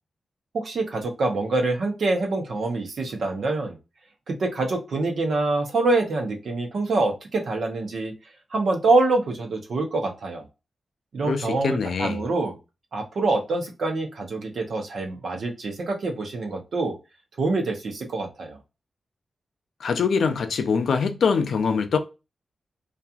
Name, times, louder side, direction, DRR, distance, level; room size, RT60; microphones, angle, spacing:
voice 1, 0.5-3.8 4.3-8.1 8.5-10.4 11.1-12.6 12.9-17.0 17.4-18.6, right 3 dB, 60° right, 0.7 m, -25 dB
voice 2, 11.2-12.2 19.8-22.0, left 5 dB, 75° left, 0.4 m, -23 dB
2.8 x 2.4 x 2.3 m
wide cardioid pair, 170°, 0 cm